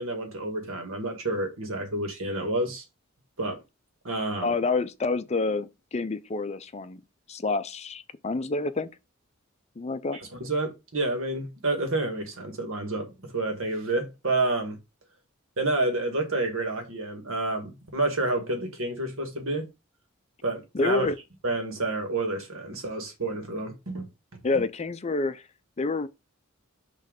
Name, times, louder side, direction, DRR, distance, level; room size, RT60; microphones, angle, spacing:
voice 1, 0.0-2.8 3.4-3.6 4.0-4.5 10.4-14.8 15.6-19.7 20.4-21.1 21.4-24.4, right 2 dB, 80° right, 1.9 m, -29 dB
voice 2, 4.4-7.0 7.3-8.9 9.8-10.2 20.7-21.2 24.4-25.4 25.8-26.1, left 3 dB, 30° left, 0.5 m, -28 dB
6.2 x 3.2 x 5.2 m
head